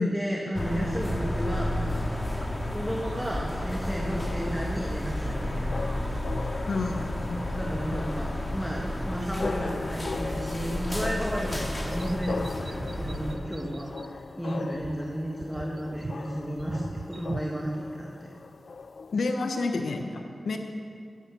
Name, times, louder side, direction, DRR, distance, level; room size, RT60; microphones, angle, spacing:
voice 1, 0.0-2.0 2.7-5.9 7.5-18.3, equal, ahead, -2 dB, 2.3 m, -33 dB
sound 1, 0.5-13.4, left 1 dB, 25° left, 2.6 m, -32 dB
sound 2, 2.4-4.2 4.5-5.3 5.6-6.5 7.5-7.6 8.8-9.7 10.7-10.8 11.2-14.1 14.4-17.6, right 3 dB, 60° right, 0.8 m, -45 dB
sound 3, 4.2-19.2, left 4 dB, 70° left, 0.4 m, -40 dB
voice 2, 6.7-7.5 19.1-20.6, left 3 dB, 85° left, 4 dB, 1.1 m, -29 dB
15.0 x 11.5 x 7.1 m, 2.3 s
cardioid pair, 55°, 0 cm